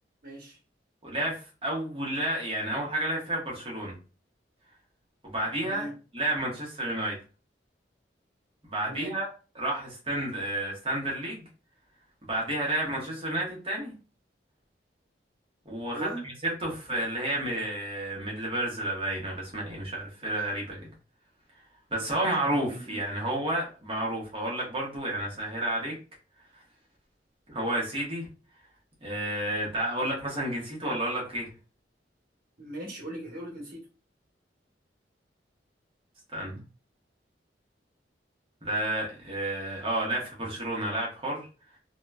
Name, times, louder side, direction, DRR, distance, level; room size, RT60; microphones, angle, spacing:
voice 1, 0.2-0.6 5.6-5.9 8.8-9.2 15.9-16.2 22.5-23.0 32.6-33.8, right 1 dB, 55° right, 1.2 m, -39 dB
voice 2, 1.0-1.4 1.6-3.9 5.2-5.8 6.1-7.1 8.6-9.3 9.5-11.4 12.2-13.9 15.6-20.9 21.9-25.9 27.5-28.3 29.0-31.5 36.3-36.6 38.6-41.5, right 1 dB, 30° right, 0.9 m, -31 dB
2.9 x 2.1 x 2.3 m
head